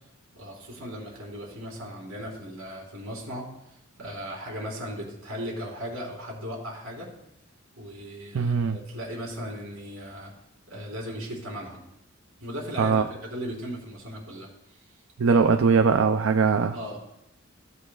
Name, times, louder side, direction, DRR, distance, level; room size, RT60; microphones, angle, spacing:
voice 1, 0.3-3.5 4.0-7.1 7.8-10.3 10.7-11.8 12.4-14.5 15.3-15.4 16.7-17.0, equal, 85° right, -2 dB, 3.9 m, -37 dB
voice 2, 8.3-8.8 12.8-13.0 15.2-16.8, right 5 dB, 70° right, 7 dB, 0.5 m, -21 dB
15.5 x 8.3 x 2.4 m, 0.83 s
head